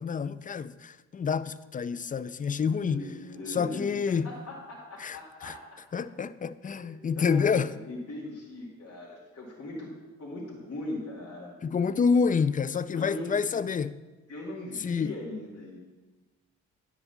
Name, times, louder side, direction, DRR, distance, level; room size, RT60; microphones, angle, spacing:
voice 1, 0.0-3.0 3.5-4.3 5.0-5.5 5.9-7.8 11.6-14.0 14.8-15.1, left 5 dB, 25° left, 0.4 m, -28 dB
voice 2, 2.5-6.0 6.6-9.9 10.2-11.6 12.9-13.6 14.3-15.8, left 1 dB, 45° left, 2.4 m, -40 dB
9.9 x 4.1 x 7.1 m
hypercardioid pair, 50°, 35 cm